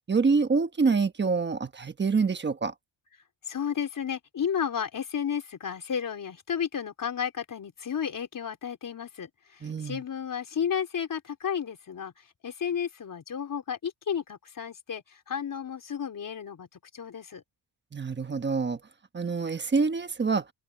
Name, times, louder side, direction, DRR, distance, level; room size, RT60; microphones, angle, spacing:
voice 1, 0.1-2.7 9.6-10.0 17.9-18.8 19.1-20.4, right 4 dB, 25° right, 1.2 m, -26 dB
voice 2, 3.5-16.7 16.9-17.4, left 8 dB, 45° left, 4.1 m, -32 dB
wide cardioid pair, 160°, 44 cm